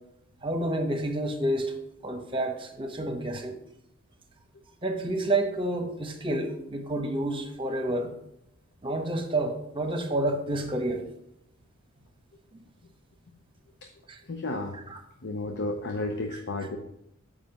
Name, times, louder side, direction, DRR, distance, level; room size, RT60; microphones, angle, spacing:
voice 1, 0.4-1.7 2.0-3.6 4.8-8.2 8.8-11.0 12.5-12.6 14.1-14.2 14.9-15.0 16.3-16.4, right 1 dB, 25° right, 4 dB, 1.0 m, -29 dB
voice 2, 14.2-14.8 15.2-16.8, left 2 dB, 55° left, 5 dB, 0.7 m, -32 dB
7.2 x 5.0 x 5.9 m, 0.80 s
head